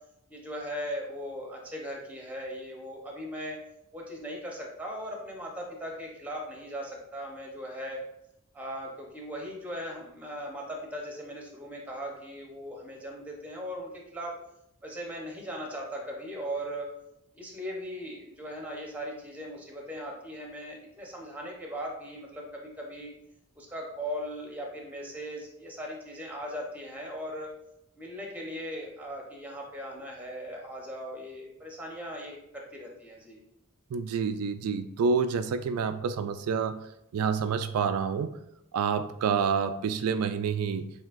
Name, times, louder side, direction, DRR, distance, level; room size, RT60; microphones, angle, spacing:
voice 1, 0.3-3.6 3.9-8.0 8.5-14.3 14.8-16.9 17.3-23.1 23.6-27.5 28.0-33.4, equal, 5° right, -1 dB, 0.9 m, -38 dB
voice 2, 33.9-36.9 37.1-38.4 38.7-40.9, right 6 dB, 80° right, 9 dB, 0.3 m, -28 dB
7.3 x 2.8 x 2.5 m, 0.80 s
head